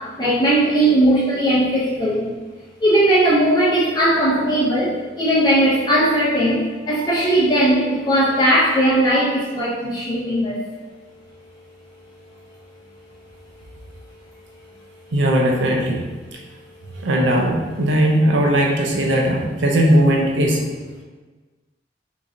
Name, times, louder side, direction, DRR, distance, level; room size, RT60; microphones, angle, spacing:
voice 1, 0.0-2.3 2.8-10.6, right 1 dB, 20° left, -8 dB, 0.7 m, -18 dB
voice 2, 15.1-16.0 17.0-20.6, right 1 dB, 75° right, 0 dB, 0.6 m, -18 dB
3.6 x 3.0 x 2.6 m, 1.3 s
head